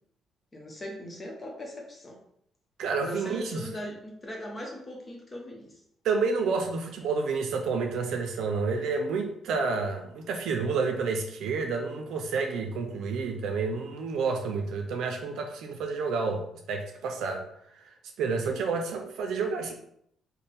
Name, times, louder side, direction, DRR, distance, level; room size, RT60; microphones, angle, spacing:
voice 1, 0.5-2.2 3.0-5.8, left 1 dB, 25° left, -1 dB, 0.8 m, -40 dB
voice 2, 2.8-3.7 6.0-16.4 16.7-17.5 17.8-19.8, right 4 dB, 80° right, 3 dB, 0.5 m, -29 dB
3.3 x 2.1 x 4.2 m, 0.71 s
cardioid pair, 90°, 0 cm